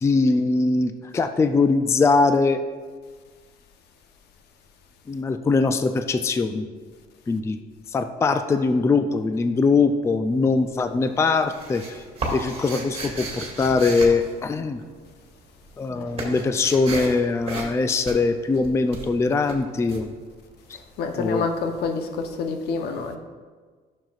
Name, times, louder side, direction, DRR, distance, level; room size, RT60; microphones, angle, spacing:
voice 1, 0.0-2.6 5.1-6.7 7.3-7.6 7.9-12.0 12.3-14.8 15.8-20.1 21.2-21.5, left 4 dB, 15° left, 8 dB, 0.4 m, -22 dB
sound 1, 10.2-10.8 11.1-15.1 15.4-21.0, right 2 dB, 35° right, 1.9 m, -34 dB
voice 2, 21.0-23.2, left 4 dB, 75° left, 5 dB, 0.8 m, -27 dB
11.5 x 6.4 x 2.4 m, 1.5 s
cardioid pair, 110°, 17 cm